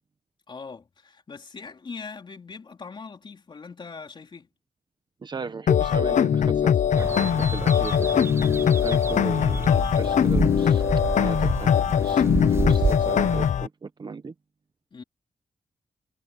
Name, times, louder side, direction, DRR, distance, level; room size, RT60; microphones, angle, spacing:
voice 1, 0.5-4.5 14.9-15.0, left 5 dB, 40° left, 3.6 m, -41 dB
voice 2, 5.2-8.3 8.8-10.8 11.1-11.8 12.0-14.3, right 4 dB, 35° right, 1.1 m, -36 dB
sound 1, 5.7-13.7, left 8 dB, 80° left, 0.9 m, -21 dB
sound 2, 7.0-13.5, right 3 dB, 20° right, 0.5 m, -30 dB
wide cardioid pair, 170°, 13 cm